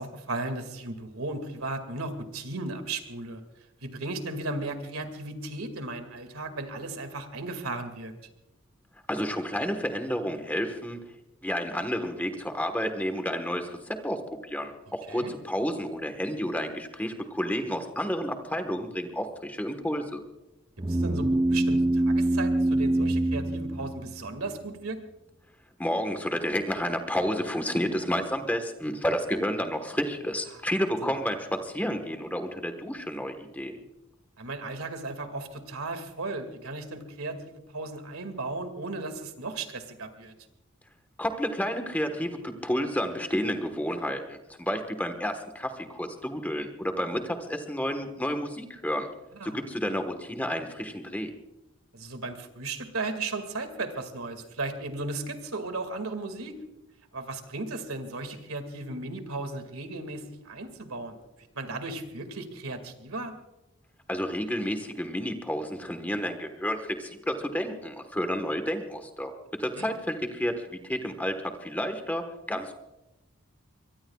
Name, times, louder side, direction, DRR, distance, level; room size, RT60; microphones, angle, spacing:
voice 1, 0.0-3.4 3.8-8.1 15.1-15.3 20.9-25.0 30.5-30.6 34.4-40.3 49.3-49.6 49.9-50.0 51.9-56.5 57.1-61.2 61.5-63.3 69.8-69.9, right 2 dB, 85° right, 7 dB, 2.2 m, -35 dB
voice 2, 9.1-11.0 11.4-20.2 25.8-33.8 41.2-49.1 49.4-51.3 64.1-69.3 69.6-72.7, equal, 5° left, 6 dB, 1.3 m, -30 dB
sound 1, 20.8-24.5, right 1 dB, 20° right, 0.5 m, -25 dB
23.5 x 23.0 x 2.4 m, 0.96 s
head